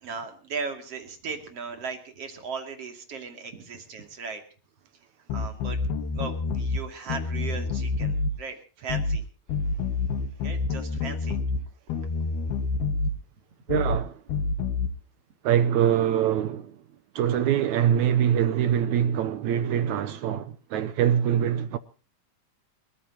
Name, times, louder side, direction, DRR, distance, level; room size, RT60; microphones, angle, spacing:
voice 1, 0.0-4.4 5.3-5.8 6.1-9.2 10.4-11.4, right 5 dB, 45° right, 3.3 m, -37 dB
sound 1, 5.3-6.8 7.1-8.3 8.9-9.2 9.5-11.6 11.9-13.1 13.7-14.0 14.3-14.9, left 4 dB, 85° left, 3.2 m, -27 dB
voice 2, 13.7-14.2 15.4-16.8 17.2-21.8, right 9 dB, 75° right, 1.7 m, -24 dB
29.5 x 14.0 x 2.9 m
omnidirectional pair, 4.4 m